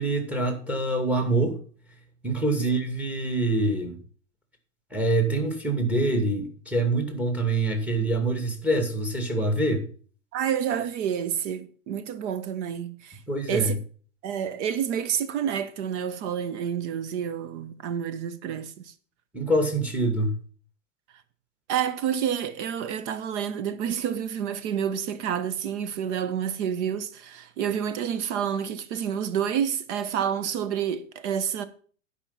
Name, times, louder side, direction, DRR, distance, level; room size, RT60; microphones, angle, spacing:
voice 1, 0.0-1.6 2.2-4.0 4.9-9.9 13.3-13.8 19.3-20.3, right 2 dB, 5° right, 2.4 m, -25 dB
voice 2, 10.3-13.2 13.5-13.8 14.2-18.9 21.7-31.6, right 8 dB, 65° right, 1.2 m, -29 dB
12.0 x 5.6 x 5.7 m
supercardioid pair, 125°, 37 cm